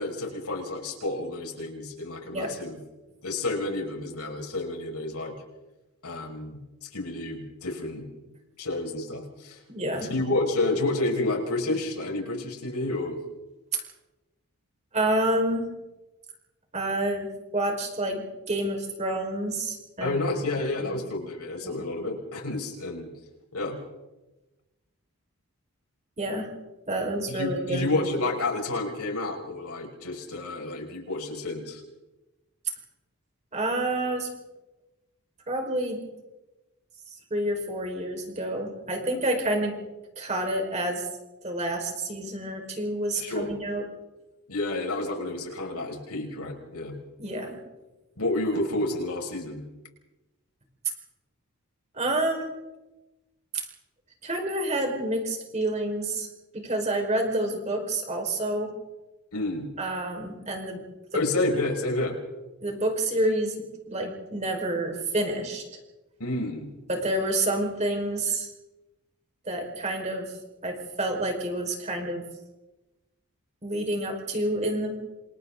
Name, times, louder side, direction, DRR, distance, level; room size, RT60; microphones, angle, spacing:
voice 1, 0.0-2.8 3.2-5.3 6.0-8.1 8.6-9.6 10.1-13.2 20.0-23.1 23.5-23.8 27.3-31.8 43.2-43.5 44.5-46.9 48.2-49.6 59.3-59.7 61.1-62.2 66.2-66.7, left 2 dB, 90° left, 1 dB, 5.9 m, -30 dB
voice 2, 9.7-10.1 14.9-15.7 16.7-20.2 20.8-21.0 26.2-26.5 26.9-27.9 33.5-34.3 35.5-36.0 37.3-39.8 40.2-41.0 41.4-43.8 47.2-47.6 51.9-52.5 54.2-56.3 56.5-58.7 59.8-60.8 61.1-61.2 62.6-65.6 66.9-68.5 69.4-70.3 70.6-72.2 73.6-75.0, right 1 dB, 30° right, 2 dB, 5.0 m, -28 dB
28.5 x 27.0 x 4.0 m, 1.1 s
head